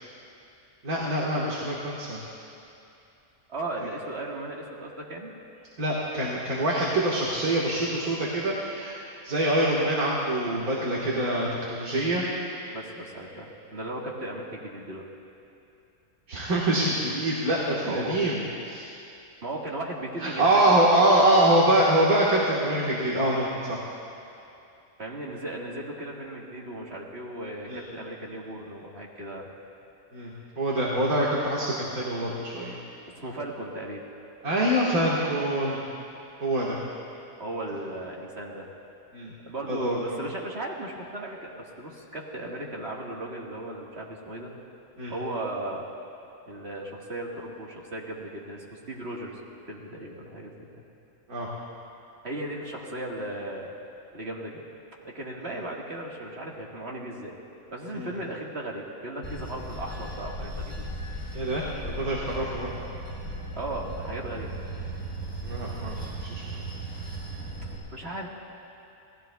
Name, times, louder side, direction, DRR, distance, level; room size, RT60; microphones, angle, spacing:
voice 1, 0.8-2.3 5.8-8.9 9.2-12.2 16.3-18.4 18.6-18.9 20.2-23.8 27.7-27.8 30.1-32.8 34.4-35.8 36.4-36.8 39.1-39.3 39.7-40.2 45.0-45.1 51.3-51.5 57.9-58.1 61.3-62.8 65.4-66.6, right 1 dB, 80° right, -5 dB, 2.1 m, -25 dB
voice 2, 3.5-5.3 12.7-15.0 17.9-18.2 19.4-20.8 25.0-29.5 33.2-34.0 37.4-38.7 39.4-44.5 45.1-45.9 46.5-49.4 49.7-50.7 52.2-53.7 54.1-54.6 55.0-57.3 57.7-60.9 63.5-64.5 67.9-68.3, right 1 dB, 45° right, -2 dB, 1.9 m, -36 dB
Bell / Train, 59.2-67.8, right 1 dB, 15° left, 3.6 m, -37 dB
28.0 x 18.5 x 2.3 m, 2.7 s
omnidirectional pair, 1.5 m